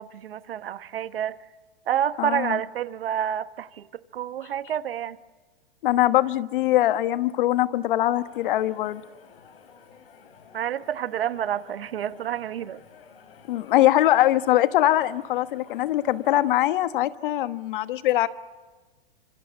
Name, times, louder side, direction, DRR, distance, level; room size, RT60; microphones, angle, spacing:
voice 1, 0.0-1.4 1.9-3.8 4.1-5.2 10.5-12.8, right 10 dB, 80° right, 1.2 m, -29 dB
voice 2, 2.2-2.6 5.8-9.0 13.5-18.3, left 14 dB, 60° left, 1.3 m, -22 dB
sound 1, 8.1-16.7, left 6 dB, 75° left, 4.8 m, -52 dB
27.0 x 26.0 x 7.1 m
hypercardioid pair, 125°, 29 cm